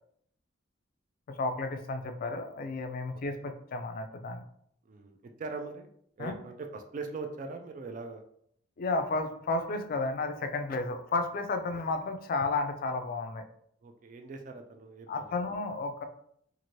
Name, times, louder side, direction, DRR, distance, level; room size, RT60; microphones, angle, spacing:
voice 1, 1.3-4.4 6.2-6.3 8.8-13.4 15.1-16.0, left 3 dB, 50° left, 6 dB, 0.3 m, -32 dB
voice 2, 4.9-5.9 6.2-8.2 13.8-15.3, right 4 dB, 40° right, 5 dB, 0.3 m, -41 dB
2.7 x 2.5 x 3.0 m, 0.68 s
head